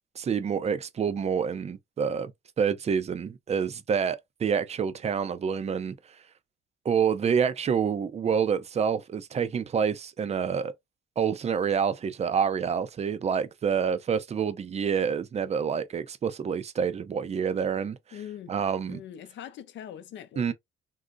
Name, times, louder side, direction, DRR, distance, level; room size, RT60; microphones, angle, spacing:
voice 1, 0.2-2.3 2.6-5.9 6.8-10.7 11.2-18.0 18.5-19.0 20.4-20.5, right 7 dB, 35° right, 0.5 m, -27 dB
voice 2, 18.1-18.6 18.9-20.5, left 10 dB, 70° left, 0.6 m, -42 dB
3.8 x 2.0 x 2.4 m
cardioid pair, 90°, 20 cm